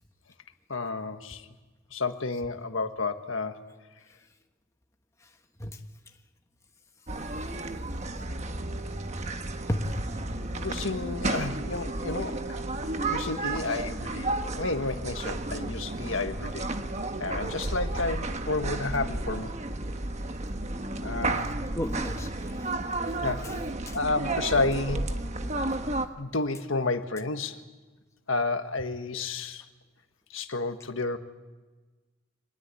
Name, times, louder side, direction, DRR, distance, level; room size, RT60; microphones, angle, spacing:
voice 1, 0.7-1.5 1.9-3.6 10.5-16.7 17.2-19.5 21.0-21.5 23.2-23.5 23.9-25.1 26.2-27.6 28.3-29.7 30.3-31.2, left 3 dB, 75° left, 8 dB, 1.6 m, -31 dB
sound 1, 7.1-26.1, right 2 dB, 35° right, 1.3 m, -32 dB
voice 2, 9.7-10.3 21.7-22.7 23.0-23.1 23.4-23.5 23.9-24.0, equal, 15° left, 4 dB, 1.3 m, -33 dB
25.5 x 20.5 x 8.3 m, 1.3 s
head